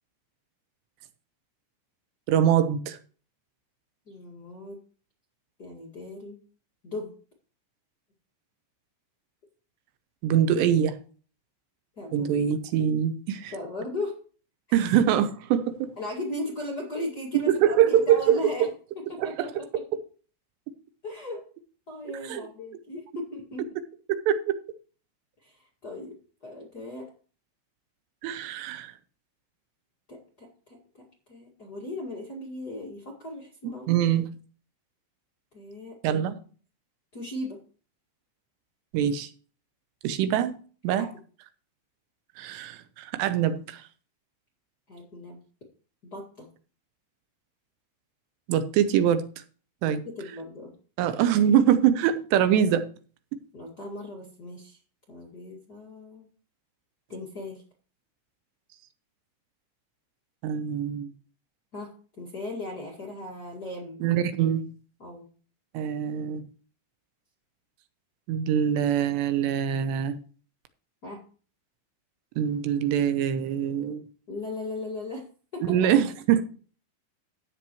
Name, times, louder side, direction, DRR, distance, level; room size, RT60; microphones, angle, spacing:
voice 1, 2.3-3.0 10.2-10.9 12.1-13.5 14.7-15.9 17.5-18.4 19.2-19.5 22.3-22.5 24.1-24.5 28.2-28.9 33.9-34.2 36.0-36.4 38.9-39.3 40.0-40.6 40.8-41.1 42.4-43.8 48.5-49.2 49.8-50.0 51.0-52.8 60.4-61.1 64.0-64.6 65.7-66.4 68.3-70.2 72.4-74.0 75.6-76.4, right 9 dB, 85° right, 3.0 m, -23 dB
voice 2, 4.1-4.8 5.6-6.4 6.8-7.1 12.0-12.3 13.5-14.2 14.7-14.8 16.0-18.7 19.1-19.5 21.0-21.4 21.9-23.6 25.4-26.2 26.4-27.1 30.1-30.8 31.3-33.9 35.5-36.0 37.1-37.6 40.9-41.1 44.9-45.4 46.1-46.5 49.8-50.7 53.5-54.8 55.1-56.3 57.1-57.6 61.7-61.9 62.2-64.0 65.0-65.3 71.0-71.2 74.3-75.2 75.5-75.9, left 1 dB, 40° left, 1.5 m, -37 dB
13.0 x 9.1 x 3.1 m
omnidirectional pair, 4.9 m